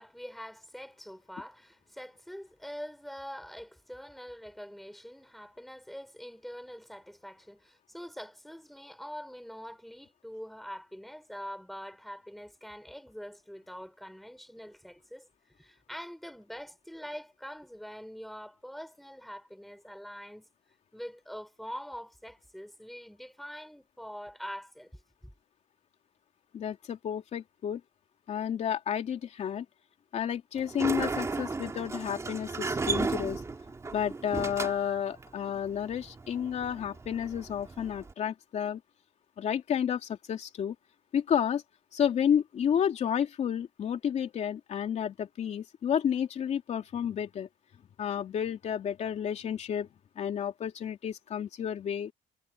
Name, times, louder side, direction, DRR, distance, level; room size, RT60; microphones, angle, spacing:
voice 1, 0.0-15.3 15.6-20.5 20.9-25.3, equal, ahead, 5.4 m, -44 dB
voice 2, 26.5-27.8 28.3-29.6 30.1-33.4 33.9-38.8 39.4-40.7 41.1-41.6 41.9-47.5 48.0-49.9 50.2-52.1, left 8 dB, 45° left, 3.0 m, -31 dB
Sliding door, 30.6-38.1, right 4 dB, 20° right, 3.0 m, -35 dB
cardioid pair, 155°, 16 cm